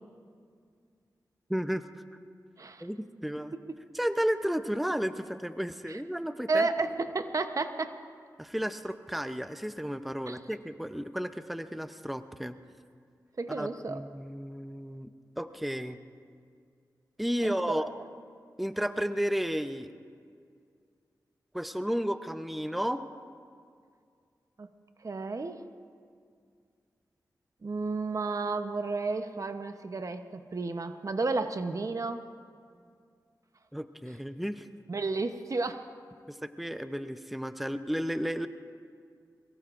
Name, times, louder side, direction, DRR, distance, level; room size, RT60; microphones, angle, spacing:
voice 1, 1.5-1.9 2.8-3.5 3.9-6.7 8.4-12.6 13.5-15.1 15.4-16.0 17.2-17.8 18.6-19.9 21.5-23.0 33.7-34.7 36.3-38.5, equal, ahead, 9 dB, 0.7 m, -33 dB
voice 2, 3.4-3.8 5.9-6.0 6.5-8.0 10.3-10.4 13.4-14.0 17.4-17.9 24.6-24.7 25.0-25.6 27.6-32.3 34.9-35.9, right 3 dB, 50° right, 8 dB, 0.8 m, -32 dB
23.0 x 23.0 x 2.5 m, 2.2 s
cardioid pair, 55°, 7 cm